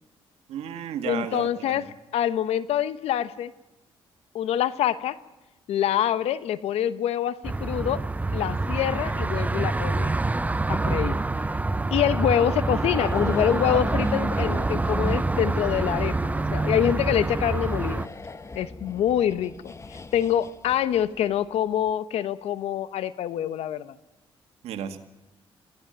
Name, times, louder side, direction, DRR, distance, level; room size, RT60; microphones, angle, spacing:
voice 1, 0.5-1.9 24.6-25.0, right 9 dB, 90° right, 8 dB, 2.0 m, -33 dB
voice 2, 1.0-1.8 2.1-3.5 4.3-5.2 5.7-8.0 8.3-10.1 10.7-11.2 11.9-18.1 18.5-19.7 20.1-23.9, left 10 dB, 85° left, 15 dB, 1.0 m, -25 dB
sound 1, 7.4-18.1, right 2 dB, 15° right, 0.6 m, -26 dB
sound 2, 12.9-21.5 21.7-21.9, left 3 dB, 30° left, 1.3 m, -41 dB
22.5 x 15.5 x 9.0 m, 1.0 s
cardioid pair, 85°, 10 cm